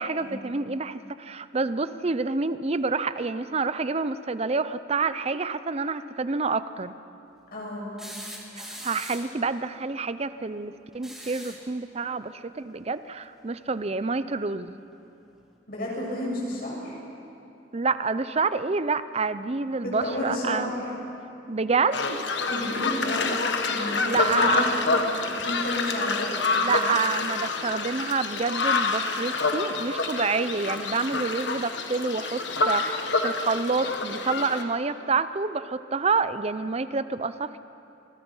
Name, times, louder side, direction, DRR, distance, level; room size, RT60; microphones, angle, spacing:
voice 1, 0.0-6.9 8.8-14.8 17.7-20.7 21.5-22.2 24.1-24.6 26.6-37.6, right 4 dB, 35° right, 13 dB, 0.6 m, -28 dB
voice 2, 7.5-7.9 15.7-16.9 19.8-21.0 22.5-23.3 23.6-24.9 25.3-26.6, left 1 dB, 50° left, -4 dB, 7.5 m, -31 dB
sound 1, 8.0-9.4 10.9-11.7 13.4-13.5 14.9-15.0, equal, 5° right, 2.8 m, -41 dB
sound 2, 21.9-34.6, left 3 dB, 70° left, 1.6 m, -27 dB
27.5 x 21.0 x 5.6 m, 2.7 s
head